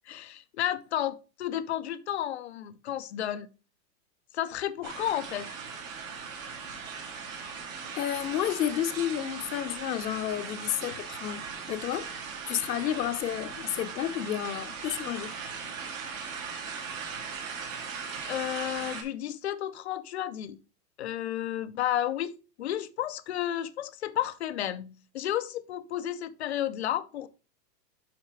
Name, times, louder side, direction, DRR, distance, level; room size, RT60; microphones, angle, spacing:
voice 1, 0.1-3.5 4.3-5.5 18.3-20.6 21.0-27.3, left 12 dB, 45° left, 0.5 m, -32 dB
sound 1, 4.8-19.0, right 6 dB, 55° right, 1.9 m, -39 dB
voice 2, 7.9-11.4 11.7-12.1 12.5-15.3, left 11 dB, 85° left, 1.0 m, -31 dB
5.7 x 5.6 x 4.6 m
supercardioid pair, 175°, 49 cm